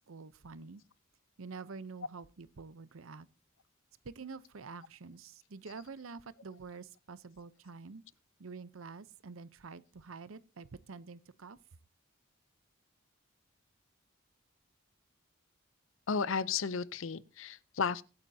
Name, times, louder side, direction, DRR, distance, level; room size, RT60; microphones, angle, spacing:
voice 1, 0.1-0.8 1.4-3.3 4.0-8.0 8.4-11.6, right 4 dB, 75° right, 0.7 m, -47 dB
voice 2, 16.1-18.0, left 5 dB, 65° left, 0.6 m, -33 dB
23.0 x 8.8 x 2.7 m
head